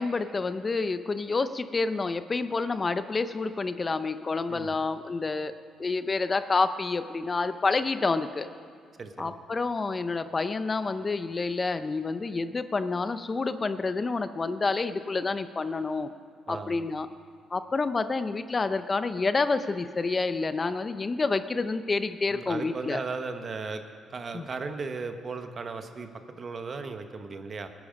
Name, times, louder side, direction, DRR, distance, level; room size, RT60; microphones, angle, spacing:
voice 1, 0.0-5.5 5.8-8.5 9.2-16.1 16.5-17.1 17.5-23.0 24.3-24.5, left 3 dB, 30° left, 11 dB, 0.6 m, -28 dB
voice 2, 9.0-9.4 16.5-16.8 22.3-23.8 24.1-27.7, right 4 dB, 40° right, 7 dB, 1.2 m, -36 dB
19.0 x 11.0 x 5.3 m, 2.1 s
cardioid pair, 90°, 0 cm